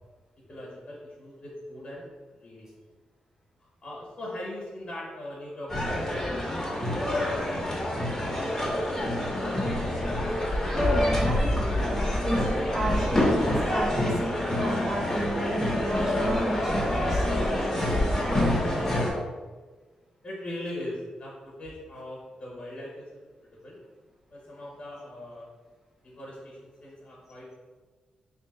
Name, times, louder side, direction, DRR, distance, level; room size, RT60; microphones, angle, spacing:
voice 1, 0.5-2.7 3.8-7.8 8.3-9.4 20.2-23.8 24.3-25.5 26.0-27.5, left 1 dB, 50° left, -4 dB, 1.2 m, -41 dB
sound 1, 5.7-19.1, left 1 dB, 15° left, 1.0 m, -27 dB
voice 2, 10.8-17.2, right 1 dB, 20° right, -4 dB, 1.4 m, -31 dB
3.4 x 2.8 x 4.0 m, 1.3 s
cardioid pair, 95°, 3 cm